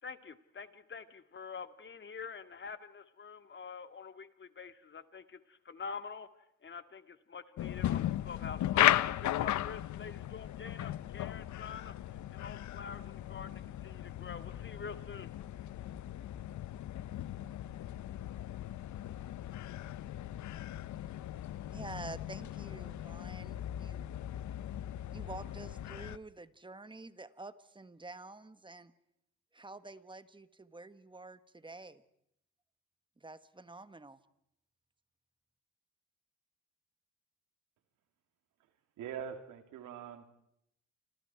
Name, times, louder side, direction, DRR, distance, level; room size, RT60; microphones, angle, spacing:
voice 1, 0.0-6.3 6.6-12.0 12.3-15.3, left 5 dB, 40° left, 10 dB, 2.1 m, -46 dB
sound 1, 7.6-26.2, left 13 dB, 70° left, 0.9 m, -36 dB
voice 2, 21.7-24.1 25.1-28.9 29.5-32.0 33.2-34.2, right 2 dB, 15° right, 12 dB, 1.5 m, -48 dB
voice 3, 39.0-40.3, right 8 dB, 90° right, 6 dB, 3.3 m, -43 dB
29.0 x 26.5 x 4.7 m, 0.76 s
cardioid pair, 90°, 30 cm